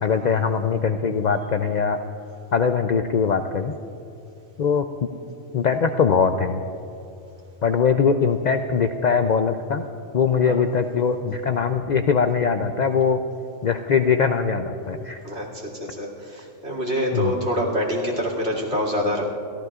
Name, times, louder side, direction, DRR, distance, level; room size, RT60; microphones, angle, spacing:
voice 1, 0.0-2.0 2.5-3.7 4.6-4.9 5.5-6.6 7.6-9.8 10.1-13.2 13.6-15.2 17.1-17.4, left 6 dB, 55° left, 7 dB, 0.5 m, -21 dB
voice 2, 15.2-19.2, equal, 70° right, -2 dB, 2.9 m, -26 dB
30.0 x 15.0 x 2.4 m, 2.7 s
omnidirectional pair, 1.2 m